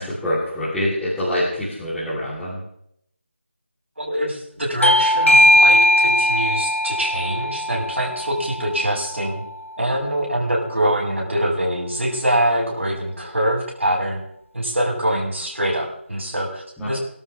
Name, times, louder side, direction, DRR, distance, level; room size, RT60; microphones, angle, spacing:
voice 1, 0.0-2.6 16.8-17.0, left 1 dB, 5° left, -14 dB, 4.1 m, -25 dB
voice 2, 4.0-9.4 9.8-14.2 14.5-17.0, right 1 dB, 75° right, -1 dB, 7.3 m, -24 dB
Bell / Doorbell, 4.8-10.0, left 1 dB, 90° left, 1.2 m, -19 dB
24.5 x 12.5 x 3.6 m, 0.72 s
figure-of-eight pair, 165°, 7 cm